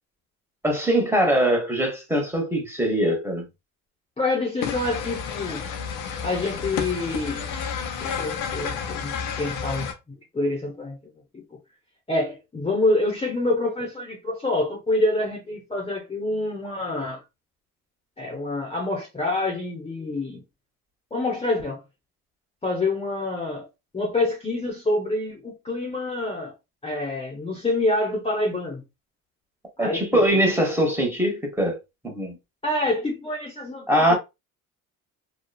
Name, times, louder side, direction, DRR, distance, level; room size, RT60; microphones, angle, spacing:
voice 1, 0.6-3.5 29.8-31.8 32.0-32.4 33.9-34.1, right 1 dB, 5° right, 1.1 m, -22 dB
voice 2, 4.2-5.7 6.2-7.6 8.0-11.0 11.3-11.4 12.1-17.2 18.2-20.4 21.1-21.8 22.6-23.7 23.9-26.5 26.8-28.8 29.8-30.4 32.6-34.1, left 2 dB, 20° left, 0.9 m, -27 dB
sound 1, 4.6-9.9, left 6 dB, 85° left, 0.7 m, -31 dB
2.9 x 2.3 x 2.3 m
supercardioid pair, 80°, 33 cm